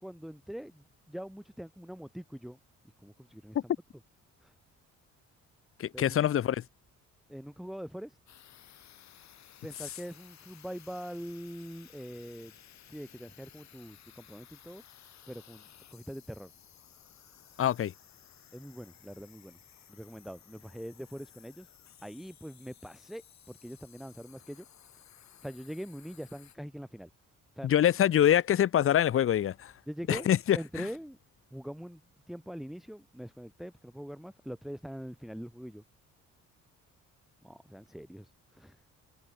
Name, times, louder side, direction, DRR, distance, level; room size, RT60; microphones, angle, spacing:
voice 1, 0.0-2.6 3.0-3.7 4.4-4.5 5.9-6.2 7.3-8.2 9.6-12.5 12.9-14.8 15.3-16.5 18.5-19.6 19.9-21.7 22.0-24.6 25.4-27.1 27.6-27.7 29.9-30.3 30.5-31.2 31.5-32.0 32.3-35.8 37.4-38.8, equal, ahead, 1.6 m, -43 dB
voice 2, 5.8-6.6 17.6-17.9 27.6-29.7 30.1-30.6, left 10 dB, 45° left, 0.7 m, -25 dB
sound 1, 8.3-26.6, left 10 dB, 65° left, 3.0 m, -57 dB
cardioid pair, 90°, 30 cm